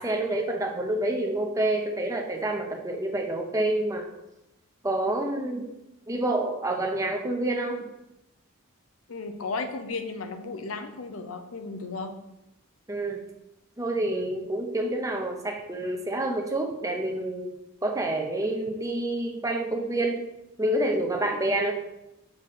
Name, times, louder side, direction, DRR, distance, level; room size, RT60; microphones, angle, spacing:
voice 1, 0.0-4.1 4.8-5.7 6.1-7.9 12.9-13.2 13.8-17.5 17.8-20.2 20.6-21.7, right 1 dB, 15° right, 2 dB, 0.7 m, -28 dB
voice 2, 9.1-12.1, left 3 dB, 80° left, 7 dB, 0.7 m, -34 dB
6.5 x 3.2 x 5.7 m, 0.91 s
head